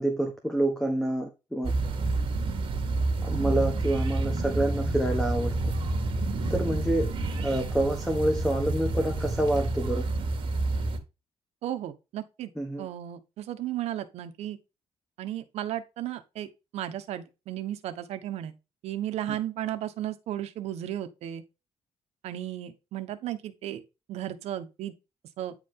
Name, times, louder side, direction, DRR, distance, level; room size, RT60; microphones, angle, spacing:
voice 1, 0.0-1.7 3.2-5.6 6.5-7.1 7.4-10.1 12.6-12.9 19.3-19.4, right 1 dB, 5° left, 1.3 m, -27 dB
sound 1, 1.6-11.0, right 2 dB, 50° right, 2.1 m, -29 dB
voice 2, 11.6-12.5 12.8-14.6 15.2-16.5 16.7-18.5 18.8-21.4 22.2-23.8 24.1-24.9 25.4-25.5, right 12 dB, 85° right, 1.2 m, -34 dB
9.9 x 5.0 x 3.8 m
cardioid pair, 145°, 11 cm